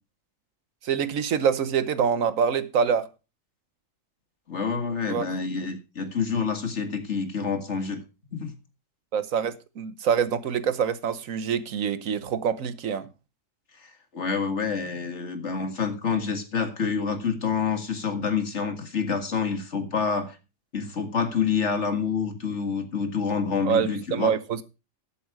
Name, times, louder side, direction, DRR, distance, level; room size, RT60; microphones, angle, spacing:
voice 1, 0.8-3.1 5.1-5.3 9.1-13.1 23.6-24.6, right 7 dB, 75° right, 1.4 m, -25 dB
voice 2, 4.5-8.0 8.3-8.6 13.8-20.4 20.7-24.3, left 5 dB, 55° left, 2.2 m, -27 dB
13.0 x 8.6 x 4.8 m
omnidirectional pair, 1.4 m